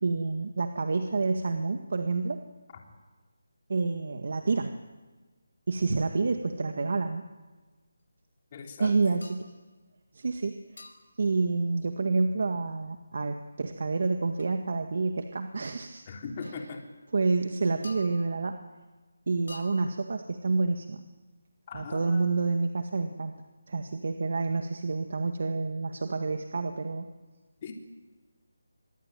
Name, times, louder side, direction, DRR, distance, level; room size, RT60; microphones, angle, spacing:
voice 1, 0.0-2.4 3.7-4.7 5.7-7.2 8.8-9.5 10.1-10.6 11.2-16.0 17.1-18.6 19.3-21.0 21.7-23.3 23.7-27.1, right 3 dB, 55° right, 6 dB, 1.8 m, -28 dB
voice 2, 8.5-9.1 16.1-16.8 21.7-22.3 27.6-27.7, left 5 dB, 25° left, 2 dB, 3.6 m, -40 dB
sound 1, 9.2-9.5 10.8-11.2 14.4-14.5 15.6-15.8 16.4-16.6 17.8-18.5 19.5-20.1, left 2 dB, 70° left, 5.7 m, -48 dB
25.5 x 21.5 x 9.2 m, 1.3 s
figure-of-eight pair, 170°, 0 cm